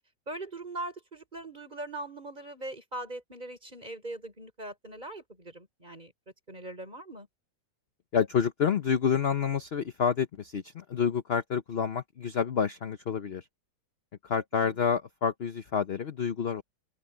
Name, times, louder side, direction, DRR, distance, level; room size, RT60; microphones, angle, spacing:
voice 1, 0.3-6.1 6.5-7.3 14.5-14.8, right 2 dB, 25° right, 5.6 m, -41 dB
voice 2, 8.1-13.5 14.2-16.6, left 7 dB, 45° left, 0.9 m, -28 dB
open air
omnidirectional pair, 1.8 m